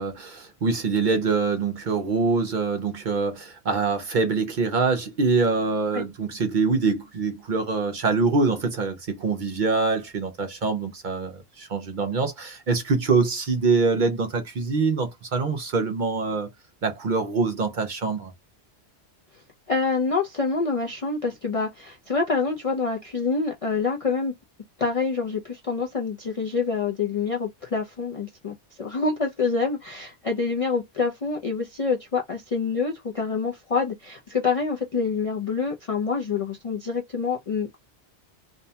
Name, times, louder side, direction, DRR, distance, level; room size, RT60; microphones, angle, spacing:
voice 1, 0.0-16.5 16.8-18.3, right 4 dB, 55° right, 0.6 m, -24 dB
voice 2, 19.7-24.3 24.8-37.8, left 4 dB, 50° left, 0.4 m, -26 dB
2.7 x 2.1 x 2.7 m
omnidirectional pair, 1.2 m